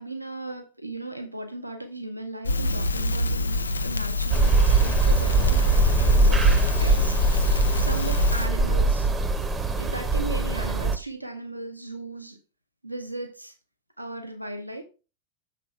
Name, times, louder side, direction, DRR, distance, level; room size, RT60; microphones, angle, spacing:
voice 1, 0.0-9.1 9.8-12.4 12.8-13.5 14.0-14.8, right 2 dB, 85° right, 0.9 m, -37 dB
Crackle, 2.4-8.5, left 3 dB, 75° left, 0.5 m, -26 dB
sound 1, 4.3-11.0, right 3 dB, 15° right, 0.8 m, -22 dB
6.8 x 5.3 x 5.4 m
figure-of-eight pair, 90°, 0 cm